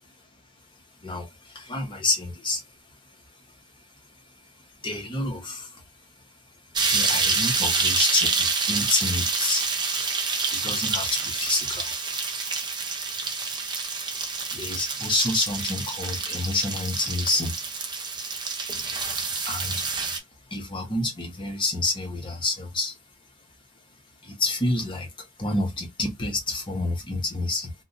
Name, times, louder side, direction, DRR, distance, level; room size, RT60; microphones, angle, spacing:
voice 1, 1.0-2.6 4.8-5.8 6.9-9.7 10.5-12.3 14.1-14.2 14.5-17.5 19.5-19.8 20.5-23.0 24.2-25.1 25.4-27.7, left 2 dB, 25° left, 0.7 m, -28 dB
sound 1, 6.8-20.2, right 4 dB, 20° right, 0.5 m, -27 dB
2.6 x 2.1 x 3.7 m
head